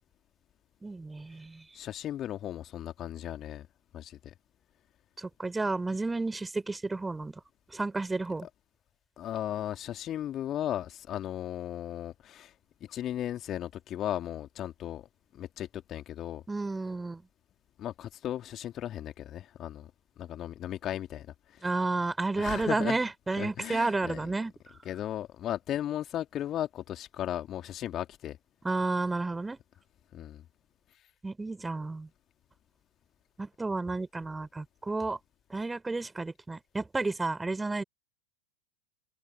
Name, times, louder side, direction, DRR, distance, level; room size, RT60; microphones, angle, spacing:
voice 1, 0.8-1.6 5.2-7.3 7.7-8.5 16.5-17.2 21.6-24.5 28.6-29.6 31.2-32.1 33.4-35.2 35.5-37.8, right 3 dB, 10° right, 4.1 m, -31 dB
voice 2, 1.7-3.7 3.9-4.3 9.2-12.5 12.9-15.1 15.3-16.4 17.8-19.9 20.2-21.7 22.3-23.0 23.4-24.3 24.8-28.4 30.1-30.4, left 11 dB, 30° left, 2.4 m, -36 dB
figure-of-eight pair, 90°, 0 cm